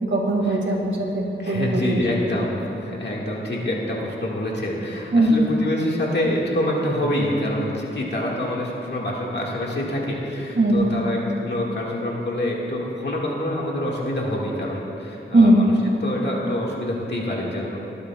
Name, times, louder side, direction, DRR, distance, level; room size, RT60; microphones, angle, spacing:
voice 1, 0.0-2.0 5.1-5.4 10.6-10.9 15.3-15.6, right 1 dB, 70° right, -1 dB, 2.1 m, -19 dB
voice 2, 1.4-15.7 16.0-17.8, left 1 dB, 55° left, -4 dB, 1.9 m, -26 dB
20.0 x 12.0 x 2.4 m, 2.9 s
wide cardioid pair, 90°, 21 cm